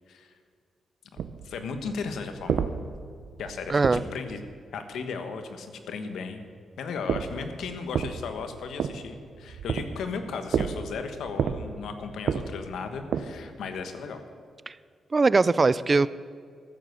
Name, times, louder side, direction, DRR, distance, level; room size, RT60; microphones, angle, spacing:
sound 1, 1.2-4.6 7.0-13.7, right 7 dB, 80° right, 0.7 m, -32 dB
voice 1, 1.4-2.7 3.4-4.4 4.7-6.4 6.8-14.2, left 5 dB, 85° left, 7 dB, 1.3 m, -36 dB
voice 2, 3.7-4.0 14.7-14.8 15.1-16.1, right 3 dB, 30° right, 18 dB, 0.4 m, -21 dB
14.0 x 7.5 x 8.0 m, 2.1 s
cardioid pair, 95°, 0 cm